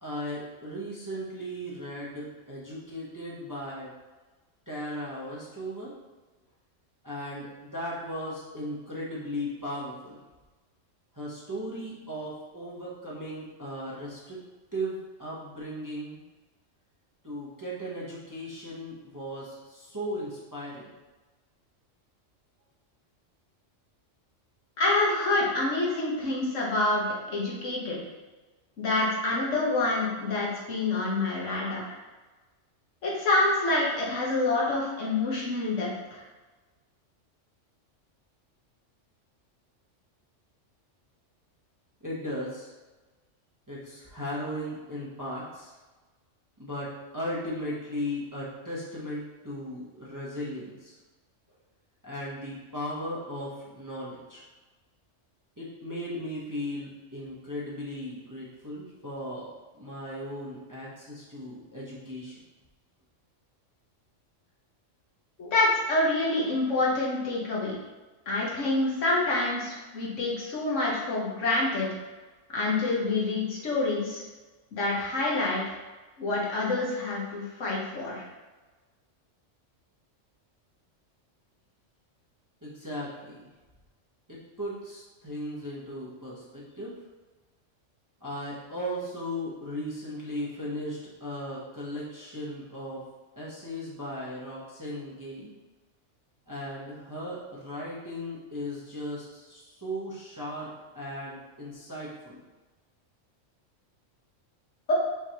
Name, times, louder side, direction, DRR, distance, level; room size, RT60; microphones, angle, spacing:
voice 1, 0.0-3.9 4.7-5.9 7.0-10.2 11.1-14.4 14.7-16.2 17.2-20.9 42.0-42.7 43.7-45.8 46.6-51.0 52.0-54.4 55.6-62.4 82.6-83.4 84.3-86.9 88.2-93.0 93.4-95.5 96.5-100.7 100.9-102.4, equal, 15° right, -7 dB, 0.8 m, -37 dB
voice 2, 24.8-28.0 28.8-31.8 33.0-36.2 65.4-67.7 68.3-71.9 72.5-74.2 74.7-75.8 76.2-78.2 104.9-105.0, left 2 dB, 75° left, -5 dB, 1.6 m, -27 dB
5.7 x 3.1 x 2.9 m, 1.2 s
omnidirectional pair, 1.3 m